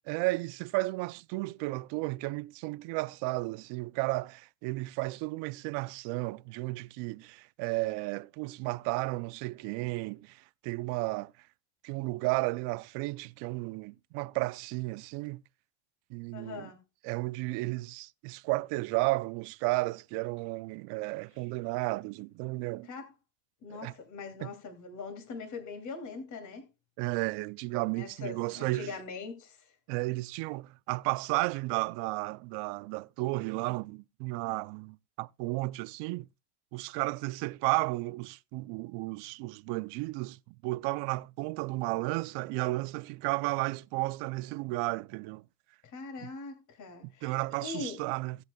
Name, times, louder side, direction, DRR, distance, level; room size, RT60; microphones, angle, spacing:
voice 1, 0.1-11.3 11.8-15.4 16.1-16.7 17.0-22.9 23.8-23.9 24.4-24.5 27.0-29.0 29.9-36.3 36.7-45.4 46.2-46.3 47.2-48.4, right 22 dB, 55° right, 0.6 m, -33 dB
voice 2, 16.3-16.8 21.4-21.5 22.8-23.1 23.6-26.7 27.9-29.7 45.8-48.0, left 4 dB, 35° left, 2.8 m, -42 dB
18.0 x 7.9 x 2.3 m
supercardioid pair, 135°, 50 cm